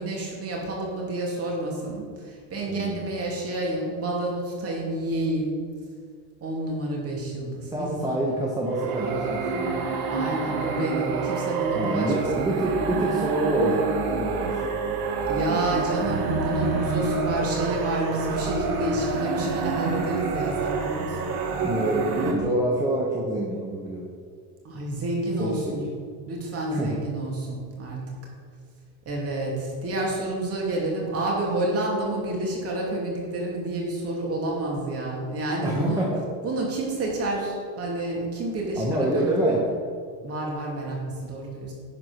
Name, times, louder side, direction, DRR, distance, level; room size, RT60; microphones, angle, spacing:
voice 1, 0.0-5.6 6.4-8.2 10.1-12.4 15.2-21.3 24.6-25.9 26.3-28.1 29.0-36.1 36.4-39.7 40.2-41.7, right 2 dB, 35° right, -2 dB, 2.6 m, -29 dB
voice 2, 2.7-3.1 7.7-9.9 11.8-14.5 21.6-24.1 25.4-25.7 26.7-27.0 35.6-36.2 38.8-39.6, right 1 dB, 10° right, -3 dB, 1.0 m, -26 dB
sound 1, 8.7-22.3, right 4 dB, 55° right, 1.5 m, -27 dB
10.5 x 4.8 x 6.3 m, 2.1 s
cardioid pair, 145°, 44 cm